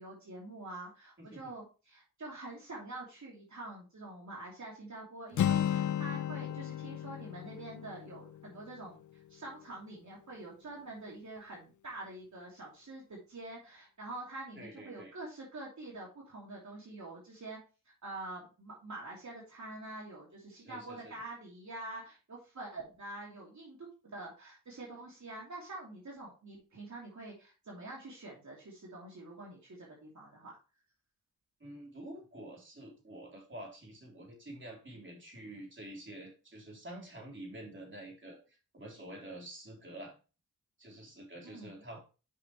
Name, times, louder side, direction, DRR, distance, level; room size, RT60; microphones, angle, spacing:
voice 1, 0.0-17.6 17.9-30.5 41.4-41.8, right 2 dB, 60° right, -3 dB, 2.9 m, -46 dB
voice 2, 1.2-1.5 14.6-15.1 20.6-21.1 31.6-40.1 40.8-42.0, right 1 dB, 35° right, -1 dB, 3.6 m, -48 dB
Acoustic guitar, 5.3-9.3, left 10 dB, 65° left, 0.5 m, -34 dB
8.2 x 5.7 x 3.0 m, 0.32 s
cardioid pair, 60°, 33 cm